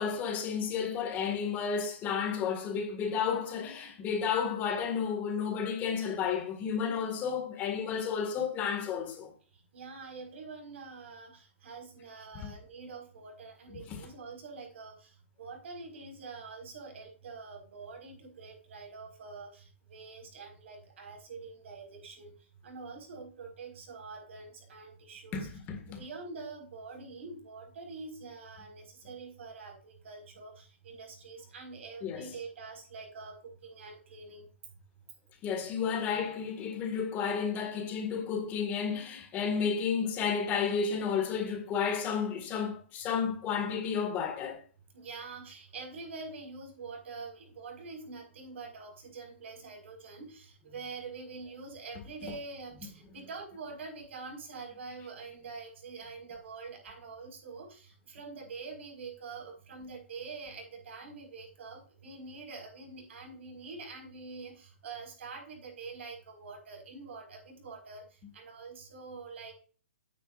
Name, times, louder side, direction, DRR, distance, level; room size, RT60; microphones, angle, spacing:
voice 1, 0.0-9.3 12.3-12.5 13.7-14.0 25.3-26.0 32.0-32.3 35.4-44.6, left 6 dB, 25° left, 1.8 m, -32 dB
voice 2, 9.7-15.1 15.4-22.3 22.6-25.5 25.9-34.5 44.9-68.0 68.3-69.5, right 4 dB, 70° right, 4.7 m, -45 dB
10.0 x 9.3 x 2.5 m
hypercardioid pair, 145°, 7 cm